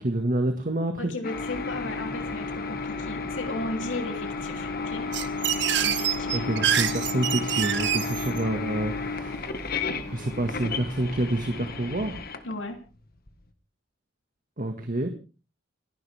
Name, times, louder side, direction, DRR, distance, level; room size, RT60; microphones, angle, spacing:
voice 1, 0.0-1.1 6.3-9.4 10.0-12.1 14.6-15.1, right 1 dB, 45° right, 5 dB, 1.8 m, -28 dB
voice 2, 1.0-5.0 5.8-6.5 12.4-12.8, left 2 dB, 75° left, 4 dB, 3.1 m, -35 dB
sound 1, 1.2-13.3, left 4 dB, 50° left, 1.6 m, -33 dB
sound 2, 1.3-12.2, equal, 15° left, 6.1 m, -42 dB
sound 3, 5.1-8.4, right 10 dB, 65° right, 1.4 m, -26 dB
30.0 x 11.0 x 3.5 m, 0.35 s
head